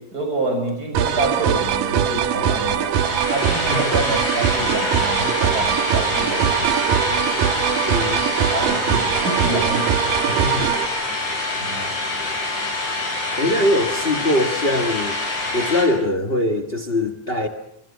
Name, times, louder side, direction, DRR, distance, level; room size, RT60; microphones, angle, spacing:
voice 1, 0.1-6.8 8.0-8.2 8.5-9.9 10.3-10.4 11.6-11.9, right 2 dB, 25° right, 4 dB, 7.1 m, -27 dB
sound 1, 0.9-10.9, right 8 dB, 80° right, 3.1 m, -21 dB
sound 2, 2.9-15.8, left 2 dB, 60° left, 8.6 m, -27 dB
sound 3, 4.5-16.0, left 6 dB, 30° left, 1.8 m, -34 dB
voice 2, 7.8-8.2 10.3-10.7 13.4-15.2 15.5-17.5, left 1 dB, 80° left, 8 dB, 0.5 m, -22 dB
27.0 x 24.5 x 7.2 m, 0.77 s
omnidirectional pair, 3.8 m